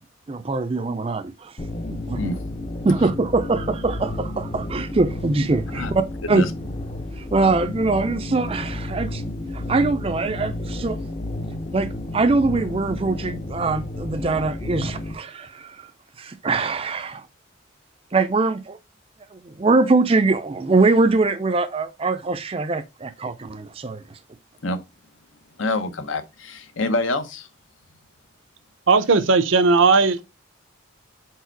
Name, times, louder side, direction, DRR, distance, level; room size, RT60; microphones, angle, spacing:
voice 1, 0.3-1.5 1.9-2.4 2.8-6.0 6.3-6.5 7.2-9.2 9.5-11.0 11.7-15.9 16.2-17.3 18.1-18.8 19.3-24.2, right 3 dB, 30° right, 0.4 m, -22 dB
sound 1, 1.6-15.1, left 1 dB, 30° left, 0.6 m, -31 dB
voice 2, 25.6-27.5, left 2 dB, 75° left, 0.9 m, -26 dB
voice 3, 28.9-30.2, right 4 dB, 75° right, 0.7 m, -16 dB
4.7 x 4.5 x 4.5 m
head